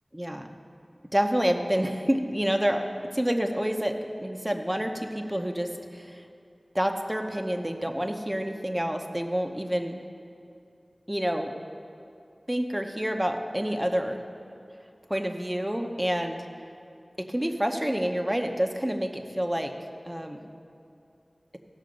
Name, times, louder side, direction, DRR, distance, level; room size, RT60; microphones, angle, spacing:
voice 1, 0.1-0.5 1.1-2.9 3.1-6.2 6.7-10.0 11.1-11.5 12.5-14.2 15.1-16.5 17.2-19.7 20.0-20.5, equal, 15° right, 4 dB, 0.9 m, -28 dB
16.5 x 6.5 x 5.2 m, 2.6 s
wide cardioid pair, 45°, 0 cm